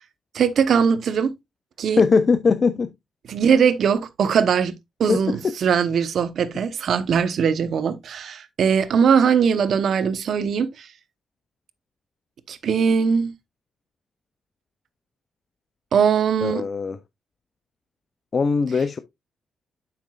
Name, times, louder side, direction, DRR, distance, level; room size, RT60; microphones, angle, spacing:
voice 1, 0.3-1.3 1.8-2.0 3.3-4.7 5.0-10.9 12.5-13.3 15.9-16.6, right 6 dB, 60° right, 0.9 m, -20 dB
voice 2, 2.0-2.9 5.1-5.4 16.4-17.0 18.3-19.0, left 5 dB, 35° left, 0.5 m, -20 dB
10.0 x 5.8 x 2.4 m
cardioid pair, 145°, 0 cm